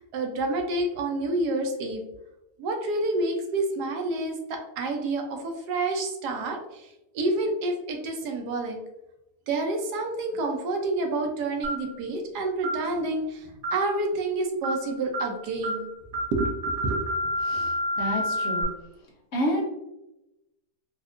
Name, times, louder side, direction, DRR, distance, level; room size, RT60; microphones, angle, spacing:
voice 1, 0.0-2.0 2.6-6.9 7.1-8.8 9.5-15.9 16.3-16.5 16.8-17.0, right 2 dB, 80° right, 3 dB, 1.2 m, -28 dB
sound 1, 11.6-11.9 12.6-12.8 13.6-13.9 14.6-14.8 15.1-15.3 15.6-15.8 16.1-18.6, equal, 40° right, 1.0 m, -29 dB
voice 2, 17.4-18.7 19.3-19.6, equal, 55° left, -1 dB, 1.1 m, -29 dB
4.2 x 2.4 x 2.4 m, 0.93 s
omnidirectional pair, 1.7 m